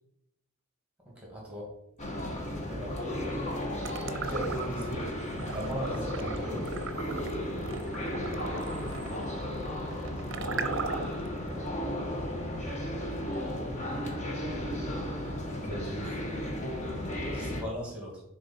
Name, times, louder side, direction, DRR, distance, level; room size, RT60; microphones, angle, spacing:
voice 1, 1.2-1.7 2.7-3.0 4.2-5.1 5.5-6.7 11.5-11.7 15.6-16.2 17.3-18.2, equal, 5° right, -3 dB, 2.1 m, -38 dB
sound 1, 2.0-17.6, left 1 dB, 35° left, 1.1 m, -34 dB
sound 2, 3.8-4.9 5.3-11.3, right 6 dB, 60° right, 0.5 m, -38 dB
voice 2, 8.5-11.3 13.2-14.2 14.5-15.4 17.2-17.5, equal, 10° left, -2 dB, 1.7 m, -45 dB
6.6 x 3.9 x 4.3 m, 0.81 s
head